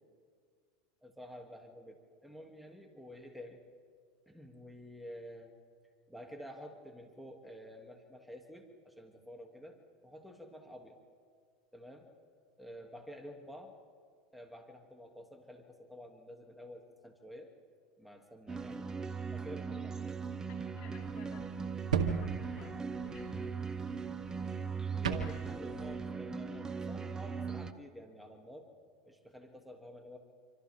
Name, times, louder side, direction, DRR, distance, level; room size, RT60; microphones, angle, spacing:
voice 1, 1.0-3.6 4.3-5.5 6.1-11.0 11.7-12.1 12.6-13.7 14.3-17.5 18.0-18.9 19.3-20.0 24.9-28.7 29.0-30.2, equal, ahead, 2 dB, 2.7 m, -50 dB
sound 1, 18.5-27.7, right 5 dB, 15° right, 1.0 m, -39 dB
voice 2, 20.5-21.6 21.9-23.6 25.2-25.4, left 7 dB, 55° left, 0 dB, 4.5 m, -57 dB
sound 2, 21.0-25.9, right 7 dB, 90° right, 1.9 m, -39 dB
28.0 x 25.5 x 3.7 m, 2.1 s
hypercardioid pair, 100°, 4 cm